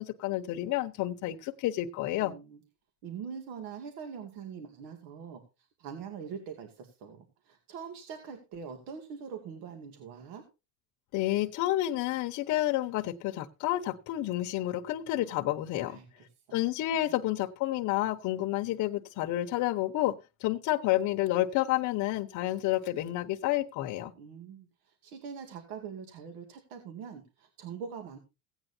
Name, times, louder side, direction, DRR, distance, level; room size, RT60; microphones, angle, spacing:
voice 1, 0.0-2.3 11.1-16.0 16.5-24.1, left 15 dB, 55° left, 1.0 m, -30 dB
voice 2, 2.2-2.6 3.0-5.4 5.8-10.4 15.8-16.3 24.1-28.2, right 6 dB, 75° right, 2.4 m, -43 dB
16.5 x 9.1 x 2.7 m
cardioid pair, 140°, 37 cm